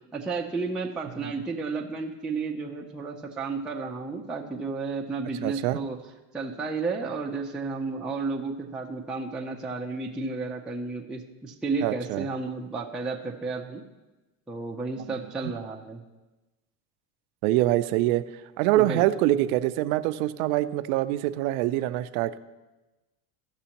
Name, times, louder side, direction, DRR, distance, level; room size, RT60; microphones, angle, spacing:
voice 1, 0.1-6.0 6.3-13.8 14.5-16.0 18.8-19.0, right 4 dB, ahead, -2 dB, 0.4 m, -32 dB
voice 2, 5.4-5.8 11.8-12.2 17.4-18.2 18.6-22.4, right 15 dB, 70° right, 12 dB, 0.6 m, -24 dB
15.5 x 6.1 x 2.9 m, 1.1 s
supercardioid pair, 125°, 46 cm